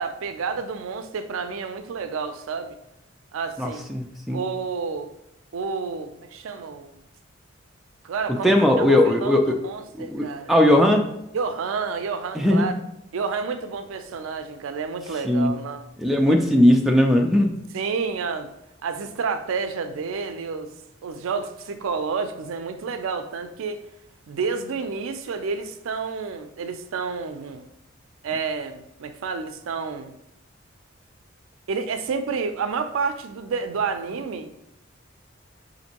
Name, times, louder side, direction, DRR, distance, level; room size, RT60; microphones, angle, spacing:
voice 1, 0.0-2.8 3.3-3.9 4.3-5.1 5.5-6.9 8.0-10.5 11.3-12.8 13.1-15.9 16.3-16.4 17.7-18.5 18.8-20.7 21.0-23.8 24.3-27.7 28.2-30.1 31.7-34.5, right 5 dB, 80° right, 9 dB, 0.4 m, -30 dB
voice 2, 3.6-4.4 8.4-9.4 10.0-11.0 12.4-12.7 15.2-15.5 16.0-17.6, left 1 dB, ahead, 1 dB, 0.3 m, -18 dB
5.1 x 2.6 x 2.8 m, 0.84 s
head